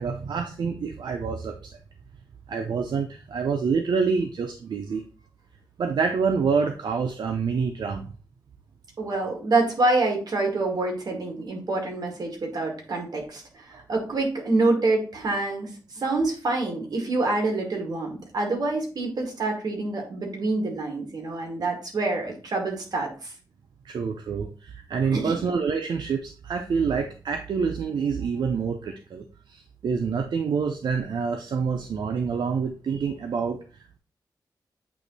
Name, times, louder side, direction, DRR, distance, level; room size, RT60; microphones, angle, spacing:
voice 1, 0.0-1.7 2.5-5.0 5.8-8.1 23.8-34.0, right 5 dB, 80° right, 5 dB, 0.6 m, -27 dB
voice 2, 9.0-15.7 15.9-23.3 25.1-25.3, right 2 dB, 60° right, 1 dB, 2.2 m, -26 dB
8.4 x 3.0 x 4.0 m, 0.37 s
wide cardioid pair, 100°, 8 cm